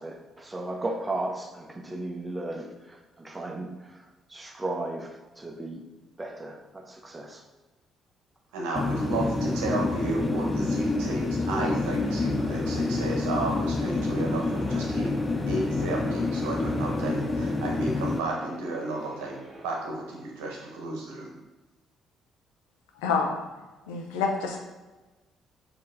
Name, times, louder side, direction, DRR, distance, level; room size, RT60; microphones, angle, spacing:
voice 1, 0.0-2.7 3.2-3.7 4.3-5.1 5.4-5.8 6.2-7.4, right 2 dB, 20° right, 3 dB, 0.8 m, -34 dB
voice 2, 8.5-15.1 15.5-19.4 19.6-21.3, right 2 dB, 80° right, -1 dB, 0.9 m, -32 dB
sound 1, 8.8-18.2, left 3 dB, 30° left, 0.4 m, -28 dB
sound 2, 11.5-19.7, right 2 dB, 40° right, 1.1 m, -45 dB
voice 3, 23.0-23.5 23.9-24.6, left 5 dB, 80° left, 2 dB, 0.6 m, -27 dB
4.2 x 2.8 x 3.8 m, 1.2 s
hypercardioid pair, 50°, 0 cm